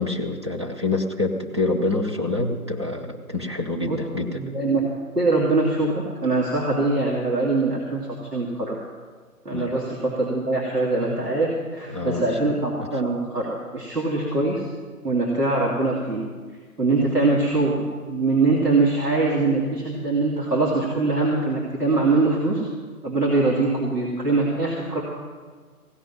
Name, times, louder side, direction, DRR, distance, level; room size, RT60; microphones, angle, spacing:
voice 1, 0.0-4.4 9.5-9.7 11.9-12.6, left 2 dB, 20° right, -1 dB, 0.7 m, -26 dB
voice 2, 4.3-4.8 5.1-8.0 8.3-8.8 9.4-14.7 15.0-16.2 16.8-22.7 23.0-25.0, right 3 dB, 85° right, -5 dB, 2.8 m, -23 dB
16.5 x 6.0 x 9.8 m, 1.5 s
figure-of-eight pair, 150°, 46 cm